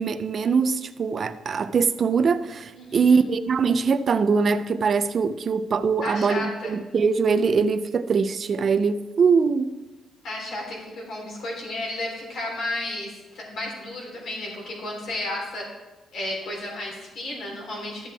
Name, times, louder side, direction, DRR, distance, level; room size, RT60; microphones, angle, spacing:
voice 1, 0.0-9.8, right 5 dB, 35° right, 0.5 m, -22 dB
voice 2, 2.7-3.2 6.0-6.7 10.2-15.7 16.1-18.1, left 1 dB, 55° left, 3.7 m, -33 dB
13.5 x 7.5 x 3.4 m
cardioid pair, 170°, 0 cm